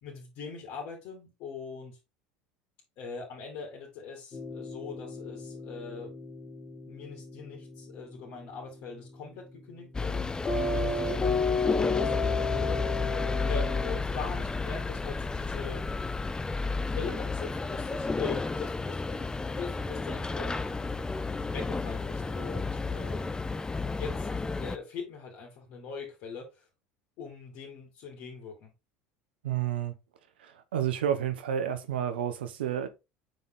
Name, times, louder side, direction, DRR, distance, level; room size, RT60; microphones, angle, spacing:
voice 1, 0.0-2.0 3.0-6.1 6.8-13.1 13.5-15.8 16.8-19.2 19.5-20.6 21.4-23.4 23.9-24.3 24.6-26.7 27.2-28.7, left 5 dB, 60° left, 2.6 m, -42 dB
sound 1, 4.3-14.0, left 3 dB, 35° left, 2.4 m, -34 dB
sound 2, 9.9-24.8, left 3 dB, 15° left, 0.5 m, -32 dB
voice 2, 29.4-29.9 30.4-32.9, right 9 dB, 85° right, 1.1 m, -30 dB
6.7 x 4.1 x 3.9 m
hypercardioid pair, 85°, 5 cm